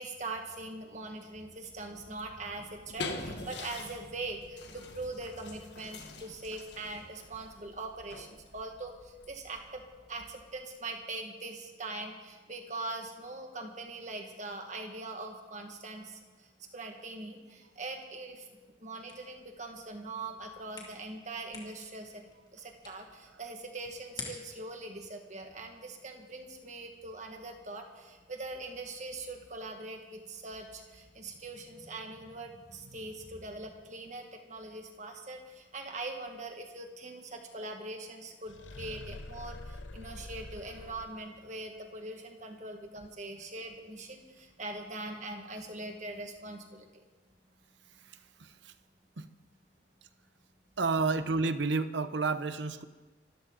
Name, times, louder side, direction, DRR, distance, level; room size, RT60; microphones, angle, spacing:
voice 1, 0.0-9.8 10.1-18.5 18.8-22.2 22.5-47.0, right 2 dB, 40° right, 3 dB, 1.9 m, -42 dB
sound 1, 2.5-10.6, left 3 dB, 65° left, 1.6 m, -45 dB
sound 2, 19.0-24.7, left 3 dB, 20° left, 2.6 m, -50 dB
sound 3, 38.5-41.5, left 2 dB, 80° left, 0.9 m, -45 dB
voice 2, 48.0-48.7 49.2-49.3 50.8-52.8, right 4 dB, 70° right, 12 dB, 0.9 m, -31 dB
25.5 x 14.0 x 4.0 m, 1.3 s
head